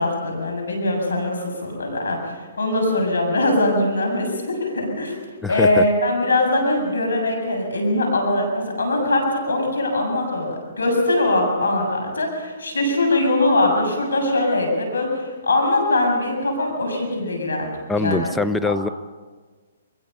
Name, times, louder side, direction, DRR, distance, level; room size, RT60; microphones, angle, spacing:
voice 1, 0.0-2.2 2.6-5.1 5.5-17.7 18.0-18.3, left 2 dB, 90° left, 3 dB, 7.3 m, -21 dB
voice 2, 5.4-5.8 17.9-18.9, left 3 dB, 5° left, 9 dB, 0.7 m, -22 dB
23.0 x 22.0 x 5.6 m, 1.4 s
hypercardioid pair, 140°, 0 cm